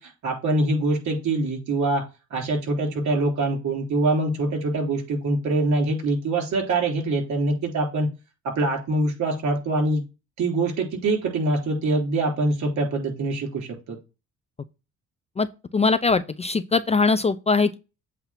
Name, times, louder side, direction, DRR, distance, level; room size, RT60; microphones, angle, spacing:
voice 1, 0.0-2.0 2.3-8.1 8.6-10.0 10.4-14.0, right 2 dB, 65° right, 3.6 m, -24 dB
voice 2, 15.7-17.8, left 4 dB, 20° left, 0.4 m, -21 dB
8.0 x 2.7 x 5.7 m
cardioid pair, 90°, 30 cm